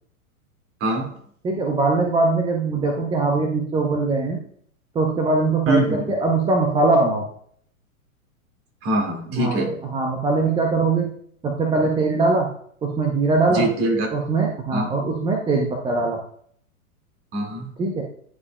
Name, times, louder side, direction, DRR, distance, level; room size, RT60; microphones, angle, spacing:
voice 1, 1.4-4.4 4.9-7.3 9.3-9.6 9.8-11.1 11.4-12.5 12.8-13.7 14.1-16.2 17.8-18.0, right 3 dB, 10° right, 1 dB, 0.6 m, -21 dB
voice 2, 5.7-6.1 8.8-9.8 13.5-14.1 14.7-14.9 17.3-17.7, right 1 dB, 30° right, 2 dB, 2.1 m, -23 dB
10.5 x 4.9 x 2.2 m, 0.62 s
hypercardioid pair, 115°, 43 cm